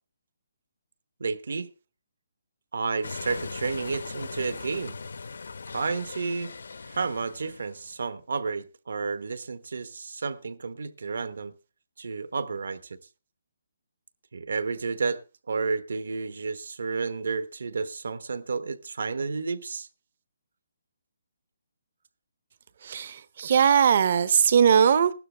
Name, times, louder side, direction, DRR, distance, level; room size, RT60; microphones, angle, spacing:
voice 1, 1.2-1.7 2.7-4.9 5.7-6.5 6.9-11.5 12.0-13.0 14.3-15.2 15.5-19.9, right 4 dB, 60° right, 1.0 m, -31 dB
sound 1, 3.0-7.9, left 4 dB, 70° left, 0.9 m, -39 dB
voice 2, 22.8-25.1, right 7 dB, 30° right, 0.7 m, -20 dB
16.0 x 12.0 x 3.3 m
hypercardioid pair, 180°, 0 cm